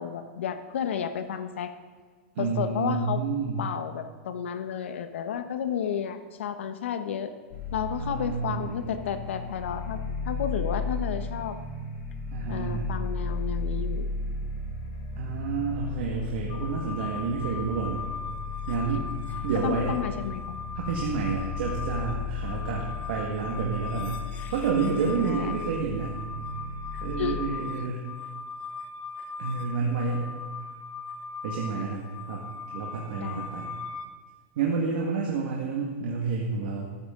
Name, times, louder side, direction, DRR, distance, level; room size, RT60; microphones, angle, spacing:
voice 1, 0.0-1.7 2.4-3.2 3.6-7.3 7.7-10.0 10.2-11.6 12.5-14.1 19.6-20.6 25.1-25.5 27.2-27.4 33.2-33.5, left 8 dB, 85° left, 9 dB, 1.2 m, -32 dB
voice 2, 2.4-3.7 8.0-8.9 12.3-12.9 15.2-18.1 18.7-19.1 19.4-19.9 20.8-24.2 24.5-26.2 27.0-28.1 29.4-30.3 31.4-32.4 32.7-33.7 34.6-36.9, right 5 dB, 55° right, -2 dB, 1.9 m, -29 dB
sound 1, 7.5-27.4, left 3 dB, 45° left, 3.0 m, -35 dB
sound 2, 16.5-34.1, left 4 dB, 20° left, 0.7 m, -39 dB
13.0 x 13.0 x 3.9 m, 1.5 s
supercardioid pair, 180°, 6 cm